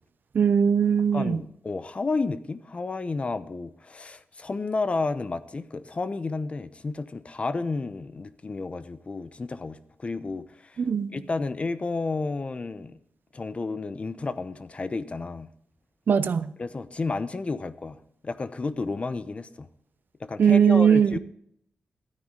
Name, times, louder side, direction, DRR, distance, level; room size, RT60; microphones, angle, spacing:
voice 1, 0.3-1.4 10.8-11.2 16.1-16.5 20.4-21.1, right 7 dB, 60° right, 0.6 m, -20 dB
voice 2, 1.1-10.8 11.1-13.0 13.3-15.5 16.6-19.7 20.2-21.2, left 3 dB, 35° left, 0.7 m, -31 dB
13.0 x 9.5 x 3.8 m
wide cardioid pair, 105°, 4 cm